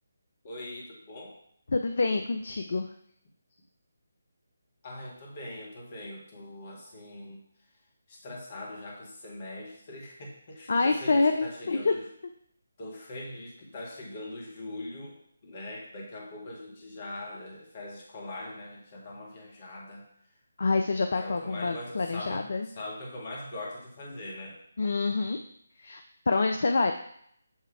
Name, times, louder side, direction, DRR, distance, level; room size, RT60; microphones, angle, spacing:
voice 1, 0.4-1.4 4.8-7.4 8.1-12.0 12.8-15.2 15.4-20.1 21.2-24.6, left 1 dB, 35° left, -3 dB, 1.8 m, -41 dB
voice 2, 1.7-2.9 10.7-11.9 20.6-22.7 24.8-25.4 25.8-26.9, left 3 dB, 50° left, 6 dB, 0.4 m, -27 dB
7.3 x 3.3 x 4.7 m, 0.68 s
figure-of-eight pair, 150°, 0 cm